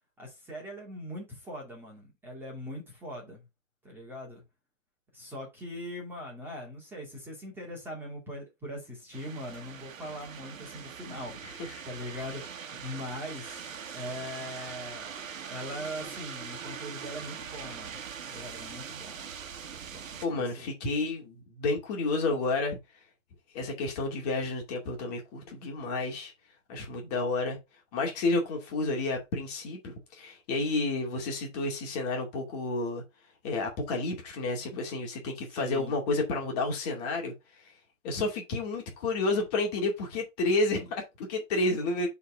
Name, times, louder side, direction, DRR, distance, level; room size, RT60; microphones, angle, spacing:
voice 1, 0.2-3.4 3.8-4.4 5.1-11.4 11.8-15.1 15.5-18.0 18.3-19.3 19.8-20.7 35.5-36.0, equal, 5° right, 2.5 m, -41 dB
sound 1, 9.1-20.3, right 7 dB, 90° right, 1.5 m, -42 dB
voice 2, 11.4-11.8 20.2-22.8 23.5-26.3 26.7-27.6 27.9-33.0 33.4-37.7 38.0-42.1, left 3 dB, 30° left, 2.4 m, -30 dB
6.3 x 4.1 x 4.9 m
hypercardioid pair, 165°, 39 cm